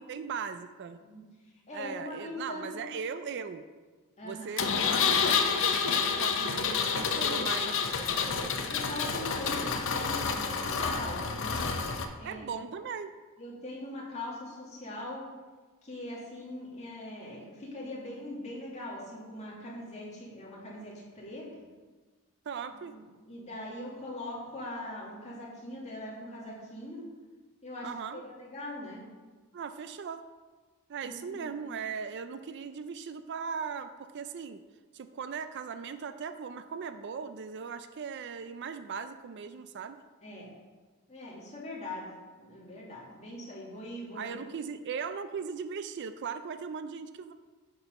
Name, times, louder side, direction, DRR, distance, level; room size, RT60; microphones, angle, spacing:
voice 1, 0.0-1.0 1.7-3.6 4.2-7.8 12.2-13.1 22.5-23.0 27.8-28.2 29.5-30.2 30.9-34.6 34.9-40.0 44.1-47.3, right 6 dB, 50° right, 10 dB, 0.4 m, -38 dB
voice 2, 1.0-2.8 4.2-4.7 6.9-7.4 8.4-11.6 12.1-12.5 13.4-15.2 15.8-21.5 22.9-27.1 27.6-29.0 31.0-31.6 40.2-40.5 41.1-42.1 42.4-44.5, left 1 dB, 30° left, -5 dB, 2.3 m, -41 dB
Engine, 4.6-12.0, left 5 dB, 60° left, 0.7 m, -29 dB
7.0 x 6.1 x 5.4 m, 1.4 s
head